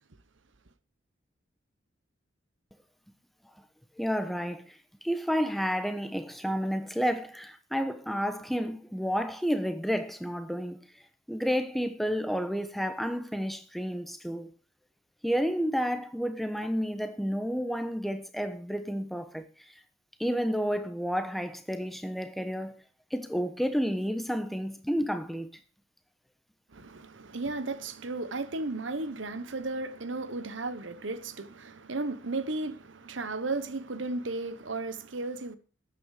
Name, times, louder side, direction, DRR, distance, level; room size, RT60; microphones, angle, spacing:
voice 1, 4.0-4.8 5.0-10.8 11.3-14.5 15.2-19.7 20.2-22.7 23.1-25.5, equal, ahead, 1.0 m, -30 dB
voice 2, 26.7-35.6, right 3 dB, 85° right, 1.1 m, -34 dB
13.0 x 9.5 x 4.9 m
head